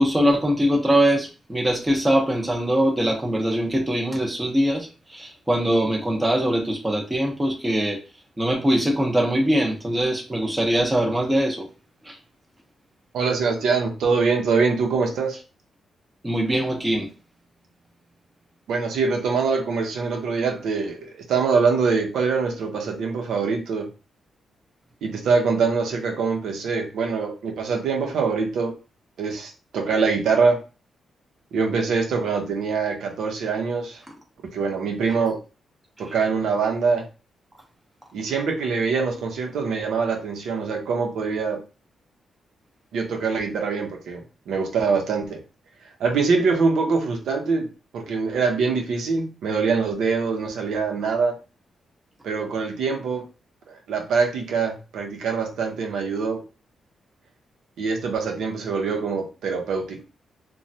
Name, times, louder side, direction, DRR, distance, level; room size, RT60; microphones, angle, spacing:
voice 1, 0.0-8.0 8.4-11.7 12.0-12.2 16.2-17.1, equal, 10° right, 0.7 m, -22 dB
voice 2, 13.1-15.4 18.7-23.9 25.0-28.7 29.2-30.6 31.5-34.0 34.4-35.4 36.0-37.0 38.1-41.6 42.9-45.4 46.0-51.4 52.2-53.2 53.7-56.4 57.8-60.0, right 5 dB, 85° right, 0.7 m, -24 dB
3.0 x 2.2 x 2.7 m
cardioid pair, 130°, 0 cm